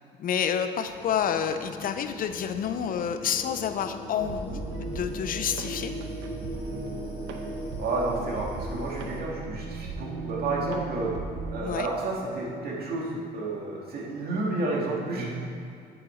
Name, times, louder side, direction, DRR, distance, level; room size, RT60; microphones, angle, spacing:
voice 1, 0.2-5.9 11.6-11.9, left 8 dB, 50° left, 9 dB, 0.6 m, -29 dB
sound 1, 0.8-9.2, left 2 dB, 30° left, 1.5 m, -40 dB
sound 2, 4.2-11.6, right 4 dB, 85° right, 0.9 m, -37 dB
voice 2, 7.8-11.1 11.5-15.4, right 2 dB, 55° right, -3 dB, 2.1 m, -31 dB
8.9 x 6.6 x 4.4 m, 2.5 s
cardioid pair, 105°, 19 cm